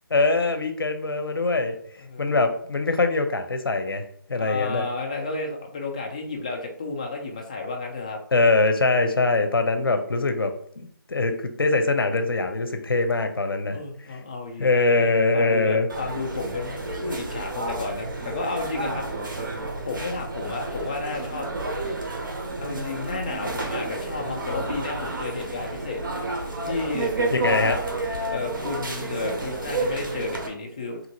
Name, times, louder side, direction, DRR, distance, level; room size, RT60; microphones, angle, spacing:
voice 1, 0.1-1.8 2.2-4.0 4.3-4.9 8.3-13.8 14.6-15.9 27.3-27.8, left 3 dB, 85° left, 7 dB, 0.6 m, -23 dB
voice 2, 2.0-2.3 4.4-8.2 13.7-19.1 19.9-21.5 22.6-26.0 26.6-27.8 28.3-31.0, left 3 dB, 20° left, 1 dB, 0.3 m, -32 dB
sound 1, 15.9-30.5, right 2 dB, 65° right, 0.8 m, -31 dB
3.0 x 2.5 x 2.9 m, 0.63 s
figure-of-eight pair, 160°, 12 cm